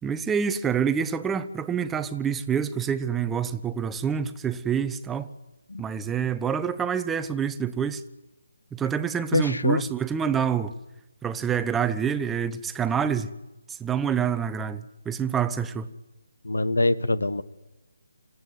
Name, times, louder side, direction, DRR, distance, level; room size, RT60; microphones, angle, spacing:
voice 1, 0.0-5.3 5.8-8.0 8.7-10.7 11.2-13.3 13.7-15.9, right 7 dB, 10° right, 0.9 m, -27 dB
voice 2, 9.3-9.8 16.4-17.4, left 2 dB, 90° left, 1.4 m, -24 dB
26.5 x 16.0 x 9.5 m
figure-of-eight pair, 155°, 0 cm